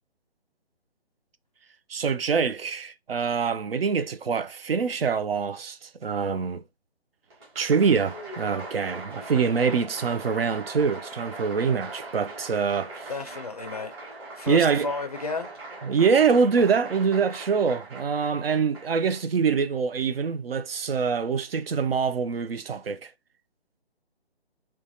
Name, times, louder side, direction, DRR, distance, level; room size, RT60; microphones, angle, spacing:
voice 1, 1.9-6.6 7.6-13.1 14.5-14.9 15.8-23.1, right 5 dB, 65° right, 0.5 m, -25 dB
Applause, 7.3-19.2, right 2 dB, 25° right, 1.2 m, -41 dB
voice 2, 13.1-13.9 14.3-15.5, left 3 dB, 40° left, 0.4 m, -32 dB
3.2 x 2.2 x 2.6 m
figure-of-eight pair, 145°, 32 cm